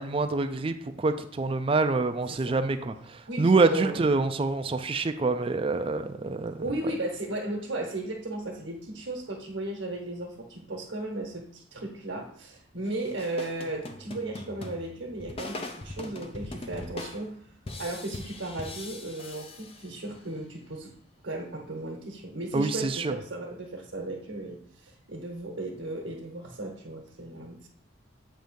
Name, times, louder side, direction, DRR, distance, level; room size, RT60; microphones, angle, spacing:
voice 1, 0.0-2.9 3.4-6.6 22.5-23.1, right 3 dB, 30° right, 0.4 m, -26 dB
voice 2, 2.3-2.6 3.3-4.1 6.6-17.4 17.8-20.9 21.2-27.7, right 2 dB, 80° right, 1.1 m, -35 dB
sound 1, 12.8-20.3, left 2 dB, 30° left, 0.5 m, -41 dB
7.6 x 2.7 x 5.2 m
head